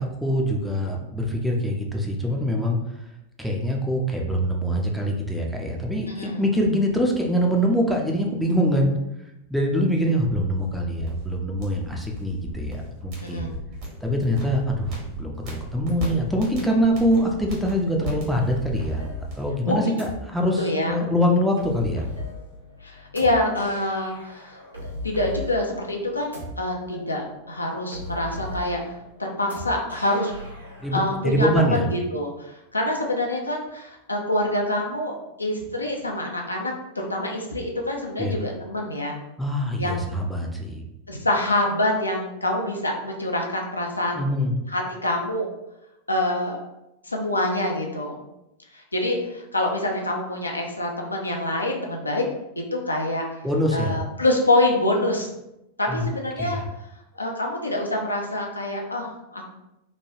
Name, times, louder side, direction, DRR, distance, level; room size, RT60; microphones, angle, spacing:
voice 1, 0.0-2.8 3.4-8.9 9.5-13.5 14.0-19.1 19.3-22.0 30.8-31.9 38.2-38.3 39.4-40.8 44.2-44.6 53.4-54.0 55.9-56.1 56.4-56.6, equal, ahead, 0 dB, 0.4 m, -24 dB
voice 2, 6.1-6.4 13.2-13.5 19.6-19.8 20.6-21.0 22.8-24.6 25.0-28.8 29.2-30.3 30.9-35.1 35.4-39.2 39.8-40.1 41.1-44.3 44.7-45.5 46.1-46.6 47.1-48.2 48.9-52.2 52.6-53.2 53.7-55.3 55.8-56.6 57.2-59.4, left 1 dB, 80° left, 0 dB, 0.4 m, -26 dB
sound 1, 10.2-19.5, right 1 dB, 45° right, 1.1 m, -36 dB
sound 2, 18.4-31.1, left 2 dB, 85° right, 0.7 m, -38 dB
3.0 x 2.2 x 2.6 m, 0.89 s
figure-of-eight pair, 90°, 0 cm